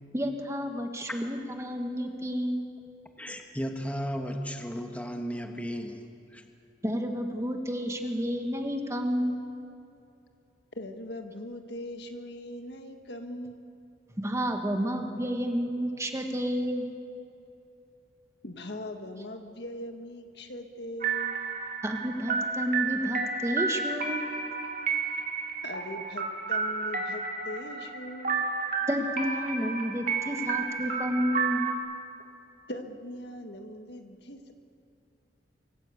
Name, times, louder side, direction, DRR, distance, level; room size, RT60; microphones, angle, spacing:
voice 1, 0.1-2.6 6.8-9.4 14.2-16.9 21.8-24.3 28.9-31.6, equal, 15° right, 4 dB, 1.6 m, -30 dB
voice 2, 3.2-6.1 6.3-6.4, equal, 10° left, 4 dB, 1.4 m, -34 dB
voice 3, 10.7-13.6 18.4-21.3 25.6-28.4 32.7-34.5, left 1 dB, 65° left, 5 dB, 1.7 m, -40 dB
sound 1, 21.0-31.8, right 5 dB, 50° right, 2.5 m, -31 dB
24.5 x 14.5 x 8.3 m, 2.7 s
head